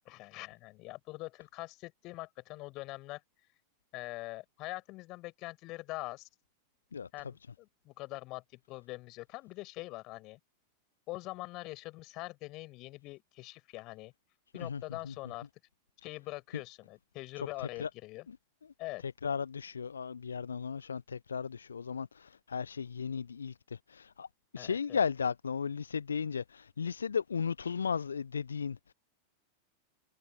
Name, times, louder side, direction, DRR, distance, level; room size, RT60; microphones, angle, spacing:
voice 1, 0.0-3.2 3.9-6.3 7.1-10.4 11.1-14.1 14.5-15.5 16.0-18.3 18.8-19.0 24.6-25.0, left 21 dB, 40° left, 7.9 m, -43 dB
voice 2, 6.9-7.3 14.5-15.1 17.6-17.9 18.3-18.4 19.0-24.3 24.5-28.9, left 6 dB, 70° left, 1.0 m, -35 dB
figure-of-eight pair, 90°, 0 cm